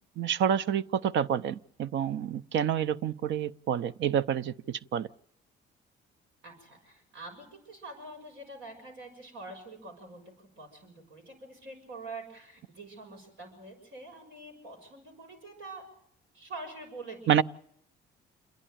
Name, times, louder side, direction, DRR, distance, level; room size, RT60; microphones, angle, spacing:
voice 1, 0.2-5.1 17.3-17.4, right 9 dB, 70° right, 0.7 m, -28 dB
voice 2, 6.4-15.8 16.3-17.3, right 2 dB, 85° right, 6.6 m, -45 dB
28.5 x 11.0 x 9.2 m
cardioid pair, 90°, 20 cm